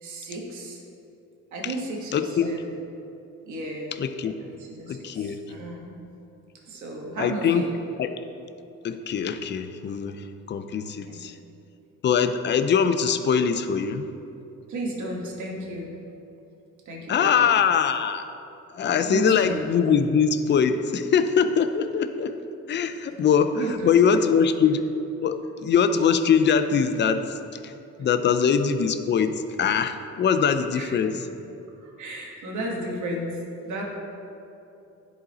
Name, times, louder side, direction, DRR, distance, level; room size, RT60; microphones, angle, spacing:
voice 1, 0.0-0.8 1.5-2.8 3.4-3.9 4.4-5.9 6.7-7.7 11.1-11.2 14.7-15.9 16.8-17.6 19.1-19.6 23.5-24.2 30.8-30.9 31.8-33.3 33.6-33.8, right 1 dB, 75° right, -1 dB, 1.5 m, -34 dB
voice 2, 2.1-2.5 4.0-4.3 4.9-5.4 7.2-7.7 8.0-8.1 8.8-11.4 12.0-14.1 17.1-18.2 18.7-22.4 22.7-24.9 25.2-27.4 27.6-27.7 28.0-31.2, left 6 dB, 35° left, 9 dB, 0.5 m, -22 dB
10.5 x 4.0 x 4.1 m, 2.8 s
cardioid pair, 90°, 30 cm